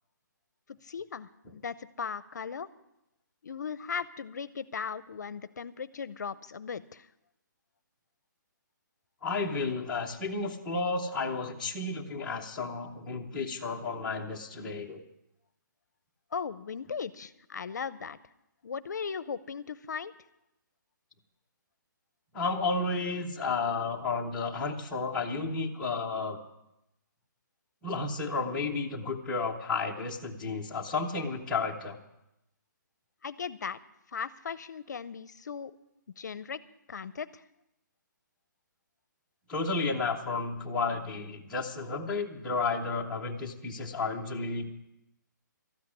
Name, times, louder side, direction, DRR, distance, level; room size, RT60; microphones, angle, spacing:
voice 1, 0.8-2.7 3.4-7.1 16.3-18.2 18.6-20.1 33.2-33.8 34.1-35.7 36.2-36.6 36.9-37.4, left 6 dB, 60° left, 17 dB, 0.6 m, -37 dB
voice 2, 9.2-15.0 22.3-26.4 27.8-32.0 39.5-44.6, left 3 dB, 5° left, -4 dB, 0.7 m, -32 dB
13.0 x 8.3 x 9.6 m, 0.86 s
hypercardioid pair, 175°, 11 cm